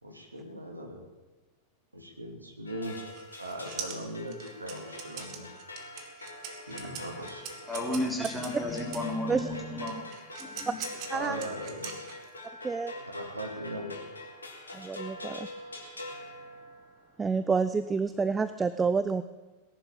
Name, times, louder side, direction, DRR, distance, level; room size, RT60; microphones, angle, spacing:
voice 1, 0.0-1.0 1.9-3.0 3.4-5.5 6.7-7.5 11.1-12.1 13.1-14.0, right 1 dB, 85° right, 2 dB, 2.8 m, -39 dB
sound 1, 2.7-17.1, left 1 dB, 75° left, 2.8 m, -44 dB
sound 2, 2.9-9.1 9.9-12.5, right 7 dB, 40° right, 2.3 m, -43 dB
voice 2, 7.7-10.1 10.4-10.8, left 1 dB, 5° left, -1 dB, 3.4 m, -33 dB
voice 3, 11.1-11.5 12.6-12.9 14.7-15.5 17.2-19.2, right 5 dB, 15° right, 12 dB, 0.6 m, -28 dB
18.5 x 11.0 x 7.1 m, 1.2 s
figure-of-eight pair, 90°, 0 cm